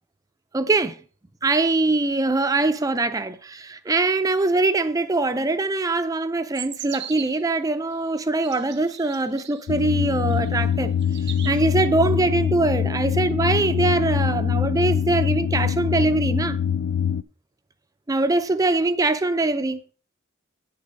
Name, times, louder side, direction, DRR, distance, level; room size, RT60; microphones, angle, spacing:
voice 1, 0.5-1.0 1.4-16.6 18.1-19.9, right 2 dB, 15° right, 0.4 m, -23 dB
sound 1, 6.5-7.5 8.1-9.7 10.3-10.7 11.0-11.7, right 11 dB, 55° right, 0.6 m, -39 dB
sound 2, 9.7-17.2, left 8 dB, 65° left, 0.3 m, -24 dB
8.9 x 6.7 x 5.2 m
head